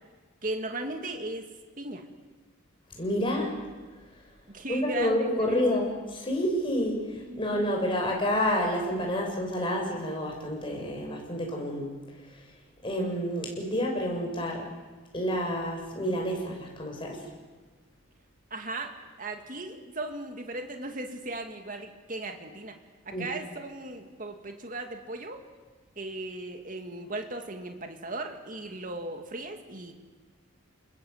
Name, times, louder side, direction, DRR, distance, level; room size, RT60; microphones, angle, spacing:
voice 1, 0.4-1.5 1.8-2.1 4.5-5.6 7.3-7.5 18.5-22.8 23.1-25.5 26.0-29.9, right 2 dB, 40° right, 4 dB, 2.3 m, -37 dB
voice 2, 3.0-3.6 4.7-11.9 12.8-14.7 15.1-17.2 23.1-23.3, equal, 25° left, 0 dB, 6.6 m, -29 dB
29.5 x 20.5 x 8.1 m, 1.3 s
head